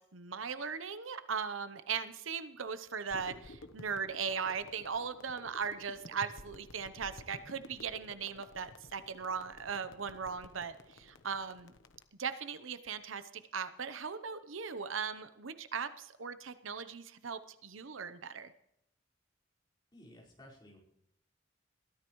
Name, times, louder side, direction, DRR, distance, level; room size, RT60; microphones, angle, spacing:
voice 1, 0.1-11.7 12.2-18.5, right 6 dB, 80° right, 11 dB, 0.8 m, -39 dB
sound 1, 3.1-12.0, left 2 dB, 70° left, 1.0 m, -53 dB
voice 2, 19.9-20.8, left 1 dB, 20° left, -5 dB, 5.0 m, -55 dB
21.5 x 14.0 x 3.1 m, 0.79 s
head